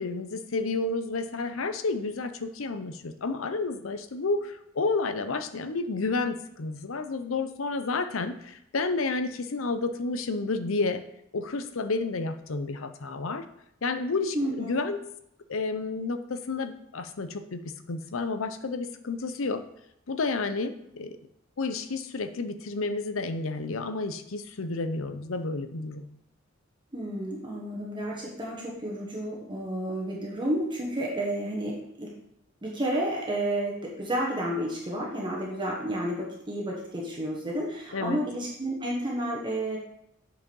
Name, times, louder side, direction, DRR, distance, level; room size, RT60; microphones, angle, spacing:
voice 1, 0.0-11.0 11.3-13.4 13.8-15.0 15.5-19.6 20.1-21.2 21.6-26.0 37.9-38.2, left 3 dB, 80° left, 9 dB, 0.7 m, -31 dB
voice 2, 14.3-14.8 26.9-32.1 32.6-39.8, right 1 dB, 25° right, -3 dB, 1.4 m, -31 dB
8.3 x 4.9 x 5.4 m, 0.76 s
head